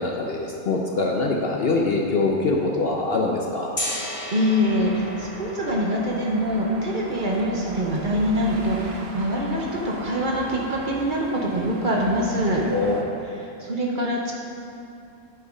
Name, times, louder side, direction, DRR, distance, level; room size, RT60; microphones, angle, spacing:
voice 1, 0.0-3.7 12.7-13.2, left 3 dB, 55° left, 0 dB, 0.8 m, -24 dB
Gong, 3.7-9.7, left 1 dB, 25° left, 1.3 m, -37 dB
voice 2, 4.3-12.6 13.6-14.3, equal, 40° right, -2 dB, 1.0 m, -24 dB
sound 1, 4.4-13.0, right 3 dB, 90° right, 1.3 m, -39 dB
9.9 x 4.7 x 5.1 m, 2.6 s
omnidirectional pair, 1.4 m